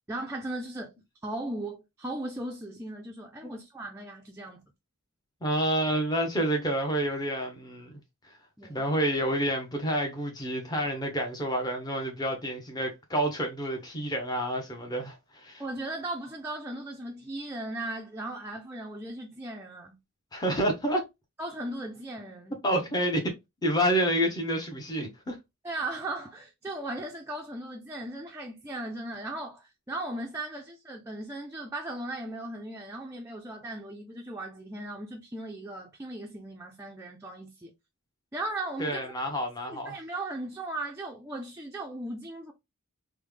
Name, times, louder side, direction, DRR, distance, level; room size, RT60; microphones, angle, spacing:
voice 1, 0.1-0.9 1.2-4.6 8.6-8.8 15.6-20.0 21.4-22.6 25.6-37.7 38.3-39.1 39.7-42.5, right 2 dB, 10° right, 0.4 m, -37 dB
voice 2, 5.4-8.0 8.7-15.6 20.3-21.0 22.6-23.3 23.6-25.4 38.8-40.0, right 1 dB, 20° left, 0.7 m, -29 dB
3.1 x 2.1 x 3.3 m
head